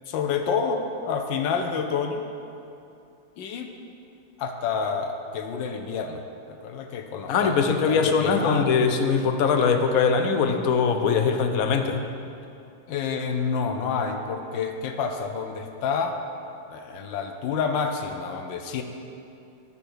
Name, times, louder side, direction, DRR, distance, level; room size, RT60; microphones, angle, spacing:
voice 1, 0.1-2.2 3.4-3.7 4.4-6.2 6.6-8.8 12.9-16.2 16.7-18.8, left 5 dB, 85° left, 5 dB, 1.5 m, -28 dB
voice 2, 7.3-12.0, left 5 dB, 65° left, 6 dB, 1.0 m, -22 dB
9.5 x 6.9 x 6.2 m, 2.6 s
omnidirectional pair, 2.0 m